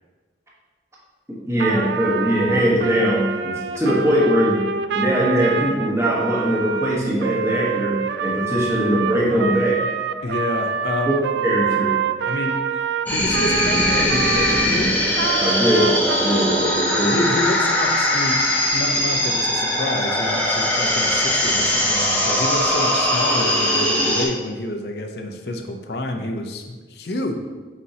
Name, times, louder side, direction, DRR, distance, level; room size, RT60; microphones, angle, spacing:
voice 1, 1.3-4.7 4.9-9.8 11.1-11.2 11.4-12.0 15.4-17.3, equal, 15° right, -5 dB, 1.2 m, -21 dB
Trumpet, 1.6-14.7 15.1-17.7, right 7 dB, 75° right, 0.3 m, -26 dB
voice 2, 10.2-11.2 12.3-12.6 13.1-15.0 17.0-18.4 18.7-27.4, left 1 dB, 65° left, 4 dB, 0.6 m, -28 dB
sound 1, 13.1-24.3, left 1 dB, 10° left, 0.7 m, -20 dB
8.2 x 4.4 x 2.8 m, 1.3 s
head